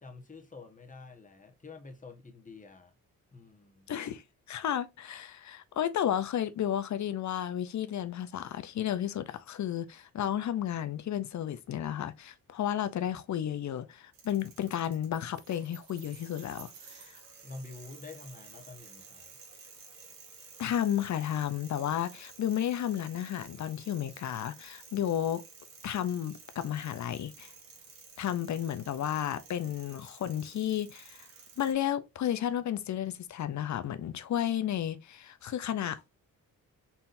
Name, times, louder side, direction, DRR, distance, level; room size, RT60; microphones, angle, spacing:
voice 1, 0.0-2.9 3.3-3.9 17.4-19.3, left 3 dB, 25° left, 1.3 m, -48 dB
voice 2, 3.9-4.2 4.5-16.7 20.6-25.4 25.8-27.5 28.2-31.3 31.6-36.0, left 10 dB, 55° left, 0.6 m, -32 dB
sound 1, 14.1-31.7, right 5 dB, 75° right, 1.4 m, -53 dB
4.3 x 3.7 x 2.6 m
cardioid pair, 70°, 33 cm